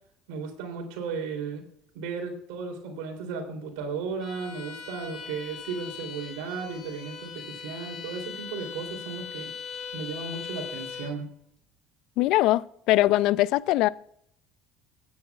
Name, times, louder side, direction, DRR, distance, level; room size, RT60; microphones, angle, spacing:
voice 1, 0.3-1.6 1.9-9.5 9.9-11.3 12.2-12.3, right 5 dB, 75° right, 3.2 m, -35 dB
Bowed string instrument, 4.2-11.2, left 7 dB, 45° left, 3.0 m, -40 dB
voice 2, 12.2-13.9, left 16 dB, 65° left, 0.4 m, -22 dB
20.0 x 9.6 x 2.4 m
hypercardioid pair, 80°, 0 cm